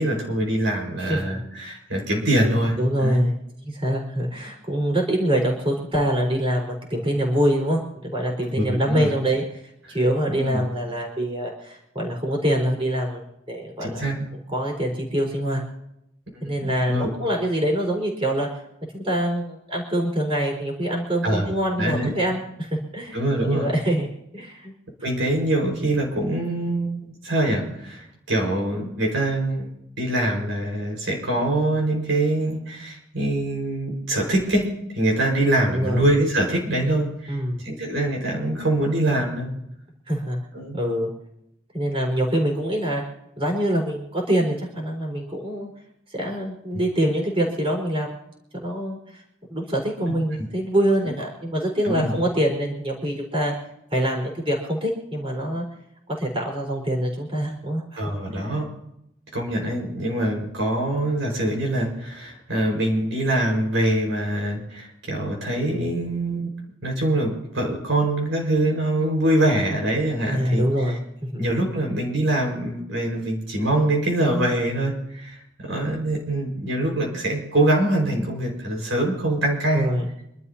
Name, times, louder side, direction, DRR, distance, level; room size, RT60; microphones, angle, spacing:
voice 1, 0.0-3.3 8.5-9.1 10.3-10.6 13.8-14.3 16.5-17.1 21.2-22.1 23.1-23.7 25.0-29.7 30.0-39.5 40.5-40.8 50.4-50.5 51.8-52.1 58.0-58.7 59.3-66.5 66.8-70.6 71.4-79.9, right 1 dB, 75° right, 0 dB, 5.1 m, -24 dB
voice 2, 1.0-1.4 2.4-3.3 3.6-9.4 9.9-14.1 14.5-15.6 16.4-18.5 18.9-24.1 24.3-24.7 35.7-36.0 37.3-37.6 40.1-40.4 40.7-41.1 41.7-43.0 43.4-45.7 46.1-48.2 48.5-49.2 49.5-53.5 53.9-55.6 56.1-58.0 58.3-58.5 65.7-65.9 70.3-71.0 71.3-71.4 79.7-80.1, right 1 dB, 30° right, 0 dB, 4.4 m, -25 dB
27.0 x 12.5 x 2.9 m, 0.79 s
head